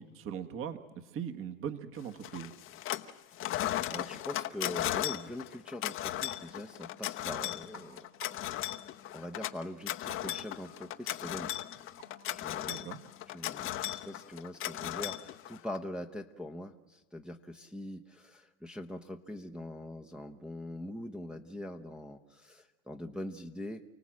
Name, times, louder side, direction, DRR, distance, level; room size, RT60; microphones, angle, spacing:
voice 1, 0.0-2.5 12.7-13.0, right 8 dB, 30° right, 8 dB, 1.6 m, -40 dB
sound 1, 2.2-3.1 3.4-15.8, left 13 dB, 30° left, 0.9 m, -36 dB
voice 2, 3.9-8.6 9.1-11.6 12.3-12.8 13.3-23.8, left 1 dB, ahead, 1 dB, 0.9 m, -43 dB
sound 2, 6.3-13.9, right 2 dB, 50° right, 4.1 m, -58 dB
29.5 x 18.0 x 7.7 m, 1.2 s
hypercardioid pair, 110°, 40 cm